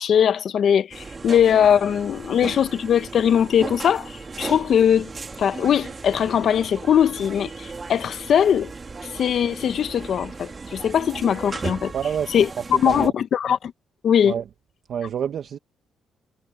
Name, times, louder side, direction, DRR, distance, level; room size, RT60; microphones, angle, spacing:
voice 1, 0.0-5.1 5.4-8.7 9.1-11.9 12.3-13.7 14.0-14.3, left 8 dB, 60° left, 1.3 m, -20 dB
sound 1, 0.9-13.1, right 4 dB, 30° right, 3.2 m, -36 dB
voice 2, 11.9-12.3 12.8-13.1 14.2-14.4 14.9-15.6, right 8 dB, 60° right, 1.5 m, -27 dB
cardioid pair, 90°, 0 cm